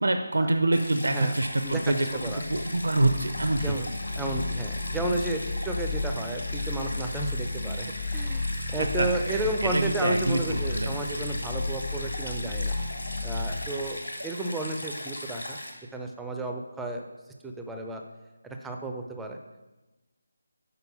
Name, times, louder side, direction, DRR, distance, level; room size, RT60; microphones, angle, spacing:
voice 1, 0.0-2.1 2.5-3.7 8.8-10.9, right 2 dB, 65° right, 6 dB, 0.5 m, -26 dB
Stream, 0.7-15.7, left 1 dB, 80° left, 1.6 m, -39 dB
sound 1, 1.6-13.7, left 2 dB, 50° left, 0.9 m, -34 dB
voice 2, 1.6-2.4 3.6-8.4 8.7-12.7 13.2-15.6 15.9-17.0 17.4-18.0 18.4-19.4, right 2 dB, 5° right, 2 dB, 0.4 m, -32 dB
6.0 x 5.2 x 5.8 m, 1.1 s
figure-of-eight pair, 155°, 0 cm